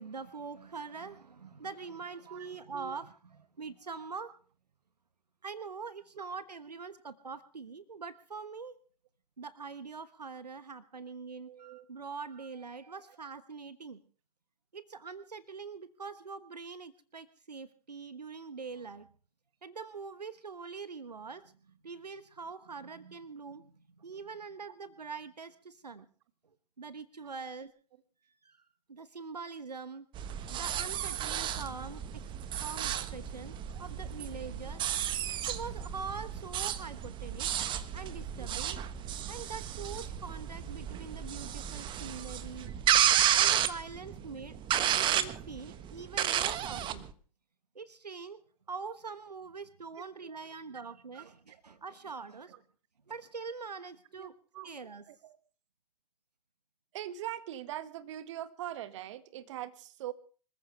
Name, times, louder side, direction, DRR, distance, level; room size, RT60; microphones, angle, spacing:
voice 1, 0.0-4.3 5.4-8.8 9.4-14.0 14.7-19.1 19.6-26.1 26.8-27.7 28.4-28.6 28.9-30.1 30.5-32.2 32.6-34.8 35.5-37.5 37.9-38.8 39.3-42.7 43.3-47.0 47.7-48.4 48.7-52.6 53.1-54.3 54.6-55.0, right 5 dB, 85° right, 1.3 m, -43 dB
voice 2, 2.3-3.0 6.1-6.2 11.4-11.9 33.7-33.8 34.7-35.2 38.4-38.5 42.6-42.8 51.1-51.6 52.5-52.6 54.2-54.7 55.1-55.4 56.9-60.1, right 12 dB, 50° right, 1.8 m, -43 dB
sound 1, 30.1-47.1, right 10 dB, 25° right, 1.4 m, -32 dB
26.0 x 14.5 x 3.4 m
figure-of-eight pair, 115°, 20 cm